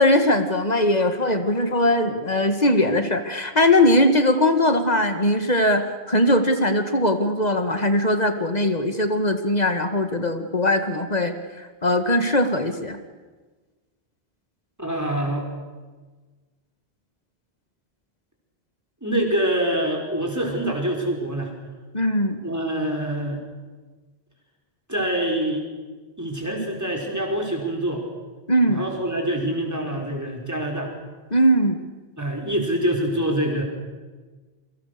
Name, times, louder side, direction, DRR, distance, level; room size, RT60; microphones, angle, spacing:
voice 1, 0.0-13.0 21.9-22.4 28.5-28.8 31.3-31.8, left 1 dB, 40° left, 7 dB, 2.0 m, -20 dB
voice 2, 14.8-15.5 19.0-21.5 22.4-23.4 24.9-25.6 26.2-28.0 28.7-30.9 32.2-33.6, right 1 dB, 15° right, 1 dB, 4.9 m, -25 dB
28.0 x 24.0 x 6.8 m, 1.3 s
omnidirectional pair, 1.1 m